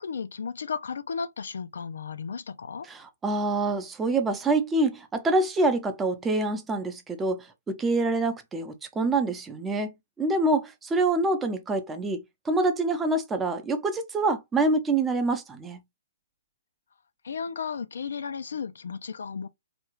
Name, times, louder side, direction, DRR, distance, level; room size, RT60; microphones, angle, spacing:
voice 1, 0.0-2.9 17.2-19.5, left 6 dB, 80° left, 0.4 m, -34 dB
voice 2, 2.9-15.8, right 2 dB, 10° right, 0.6 m, -26 dB
3.4 x 2.4 x 3.0 m
hypercardioid pair, 140°, 0 cm